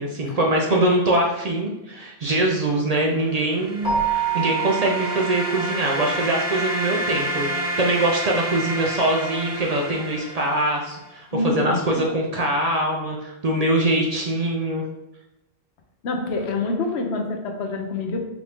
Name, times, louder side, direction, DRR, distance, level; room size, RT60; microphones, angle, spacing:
voice 1, 0.0-14.8, right 1 dB, 50° right, -1 dB, 0.5 m, -23 dB
sound 1, 3.3-11.0, right 1 dB, 90° right, 1.5 m, -29 dB
Keyboard (musical), 3.8-6.3, right 7 dB, 50° left, 1.2 m, -27 dB
voice 2, 11.3-12.1 16.0-18.2, left 3 dB, 85° left, 2 dB, 1.0 m, -26 dB
4.8 x 2.6 x 3.5 m, 0.94 s
omnidirectional pair, 1.1 m